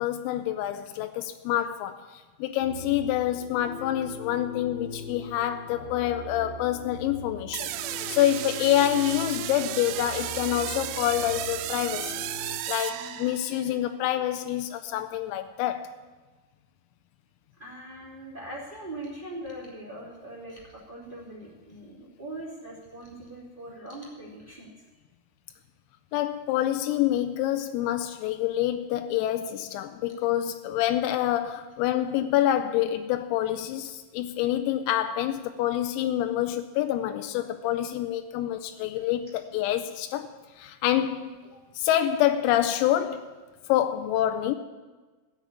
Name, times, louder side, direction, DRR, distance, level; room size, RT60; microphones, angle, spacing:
voice 1, 0.0-2.0 2.4-7.7 8.1-12.3 12.7-16.0 26.1-40.3 40.6-41.3 41.8-43.3 43.7-44.6, left 12 dB, 90° left, 3.3 m, -27 dB
sound 1, 2.6-12.6, left 2 dB, 75° left, 2.1 m, -42 dB
sound 2, 7.5-13.7, right 14 dB, 85° right, 2.9 m, -34 dB
voice 2, 17.6-24.7 41.5-41.6, right 1 dB, 15° right, 2.0 m, -41 dB
15.5 x 7.5 x 8.2 m
omnidirectional pair, 6.0 m